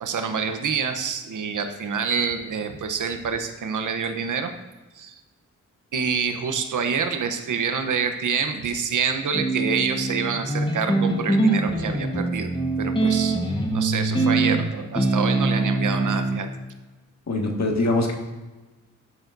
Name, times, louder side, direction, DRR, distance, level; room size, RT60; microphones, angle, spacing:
voice 1, 0.0-4.5 5.0-5.2 5.9-12.5 12.8-13.4 13.7-16.5, right 6 dB, 75° right, 7 dB, 0.9 m, -27 dB
sound 1, 9.3-16.4, right 2 dB, 15° left, 1.3 m, -23 dB
voice 2, 17.3-18.1, left 2 dB, 60° left, 1 dB, 1.9 m, -22 dB
12.5 x 7.0 x 2.6 m, 1.2 s
cardioid pair, 80°, 31 cm